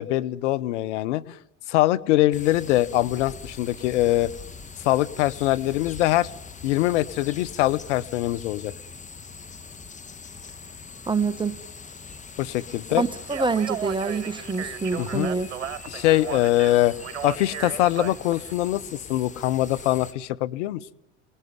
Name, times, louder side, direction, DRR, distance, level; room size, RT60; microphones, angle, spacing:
voice 1, 0.0-1.4 1.7-4.3 4.8-6.3 6.6-8.7 12.4-13.0 15.0-15.3 15.9-16.9 17.2-20.9, left 15 dB, 75° left, 15 dB, 1.0 m, -23 dB
sound 1, 2.3-20.1, left 4 dB, 20° left, 1.6 m, -42 dB
voice 2, 11.1-11.6 12.9-15.5, right 4 dB, 15° right, 14 dB, 1.3 m, -26 dB
Speech, 13.2-18.5, right 10 dB, 85° right, 1.1 m, -36 dB
30.0 x 19.5 x 9.6 m, 0.87 s
hypercardioid pair, 75°, 36 cm